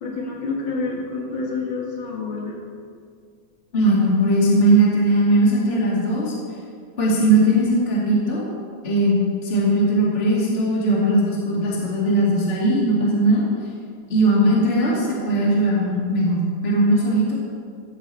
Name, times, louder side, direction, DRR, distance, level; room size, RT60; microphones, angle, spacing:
voice 1, 0.0-2.6, left 3 dB, 45° left, -2 dB, 1.9 m, -28 dB
voice 2, 3.7-6.3 7.0-8.4 8.8-13.4 14.1-17.5, right 1 dB, 20° left, -5 dB, 2.1 m, -19 dB
14.0 x 7.5 x 4.3 m, 2.1 s
omnidirectional pair, 3.6 m